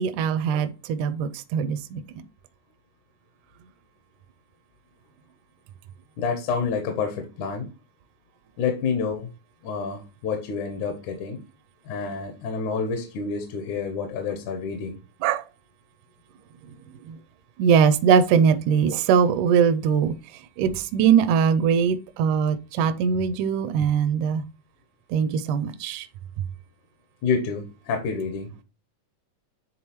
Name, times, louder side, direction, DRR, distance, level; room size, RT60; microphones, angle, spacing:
voice 1, 0.0-2.0 15.2-15.4 17.1-17.2 17.6-20.1 20.6-24.4 25.1-26.1, right 7 dB, 80° right, 1.9 m, -21 dB
voice 2, 6.2-7.7 8.6-9.3 9.6-11.4 11.9-15.0 27.2-28.5, left 5 dB, 70° left, 2.2 m, -28 dB
9.4 x 3.7 x 2.9 m
omnidirectional pair, 3.8 m